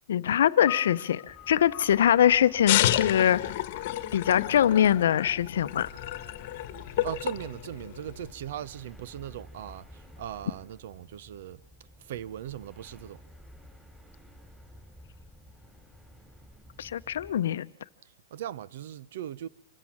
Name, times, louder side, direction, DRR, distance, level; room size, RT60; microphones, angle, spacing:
voice 1, 0.1-3.5 4.1-5.9 16.8-17.7, left 10 dB, 75° left, 0.7 m, -23 dB
sound 1, 0.7-7.1, left 20 dB, 30° left, 1.2 m, -47 dB
sound 2, 1.3-17.4, equal, 5° right, 4.1 m, -52 dB
sound 3, 2.7-8.3, left 14 dB, 50° left, 1.2 m, -30 dB
voice 2, 7.0-11.6 12.0-13.2 18.0-19.5, right 11 dB, 60° right, 0.8 m, -39 dB
26.0 x 13.5 x 8.7 m
hypercardioid pair, 145°, 0 cm